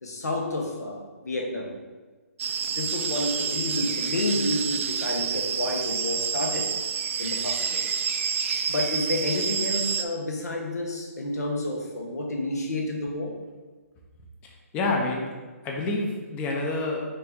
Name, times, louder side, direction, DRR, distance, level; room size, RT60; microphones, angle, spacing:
voice 1, 0.0-1.8 2.7-6.7 7.2-8.0 8.7-13.4, left 2 dB, 80° left, 1 dB, 1.0 m, -30 dB
sound 1, 2.4-10.0, right 7 dB, 55° right, 0.3 m, -28 dB
voice 2, 14.4-15.3 15.6-17.0, left 2 dB, 15° left, 0 dB, 0.5 m, -28 dB
5.5 x 2.6 x 3.6 m, 1.3 s
hypercardioid pair, 150°, 9 cm